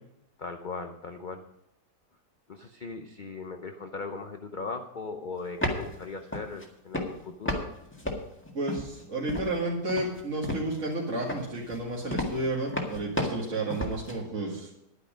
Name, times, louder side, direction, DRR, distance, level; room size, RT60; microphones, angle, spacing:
voice 1, 0.4-1.4 2.5-7.7, left 4 dB, 55° left, 6 dB, 0.5 m, -38 dB
sound 1, 5.4-6.0 6.3-6.6 6.9-7.7 7.9-9.0 9.3-9.6 9.9-10.9 11.3-14.1, left 1 dB, 5° left, 1.6 m, -32 dB
voice 2, 8.5-14.7, right 2 dB, 45° right, -4 dB, 2.2 m, -31 dB
11.0 x 9.6 x 5.1 m, 0.84 s
omnidirectional pair, 1.9 m